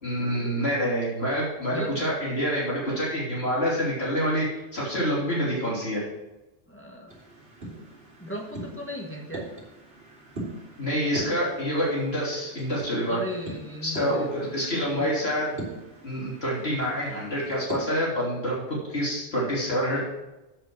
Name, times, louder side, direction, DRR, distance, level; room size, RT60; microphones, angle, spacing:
voice 1, 0.0-4.5 4.7-6.0 10.8-13.2 13.8-15.5 16.0-20.0, equal, 60° left, -7 dB, 3.6 m, -27 dB
voice 2, 1.7-2.1 6.7-7.1 7.6-7.8 8.2-9.5 13.1-15.1, equal, 10° left, -1 dB, 1.4 m, -37 dB
sound 1, 7.1-17.9, right 2 dB, 55° right, 3.2 m, -42 dB
7.8 x 7.7 x 6.3 m, 1.0 s
omnidirectional pair, 1.2 m